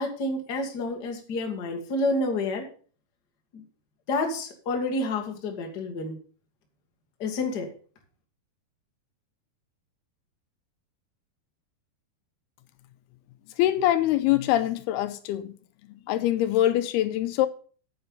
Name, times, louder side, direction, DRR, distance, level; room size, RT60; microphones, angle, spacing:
voice 1, 0.0-2.7 3.5-3.6 4.1-6.2 7.2-7.7, left 2 dB, 40° left, 1.6 m, -29 dB
voice 2, 13.6-15.5 16.1-17.5, left 13 dB, 80° left, 2.6 m, -24 dB
9.5 x 7.9 x 5.4 m
omnidirectional pair, 4.6 m